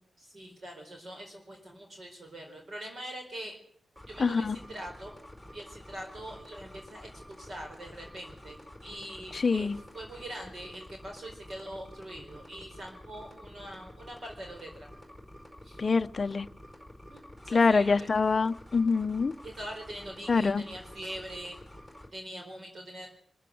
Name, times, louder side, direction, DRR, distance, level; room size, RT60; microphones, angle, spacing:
voice 1, 0.2-3.6 4.1-5.2 5.5-14.9 15.6-15.8 17.1-18.1 19.4-21.6 22.1-23.1, right 1 dB, 40° right, 2 dB, 4.4 m, -43 dB
sound 1, 4.0-22.1, left 1 dB, 5° right, 4.8 m, -49 dB
voice 2, 4.2-4.6 9.3-9.8 15.8-16.5 17.5-19.3 20.3-20.6, left 4 dB, 35° left, 10 dB, 0.8 m, -25 dB
24.5 x 15.0 x 7.8 m, 0.62 s
wide cardioid pair, 150°, 0 cm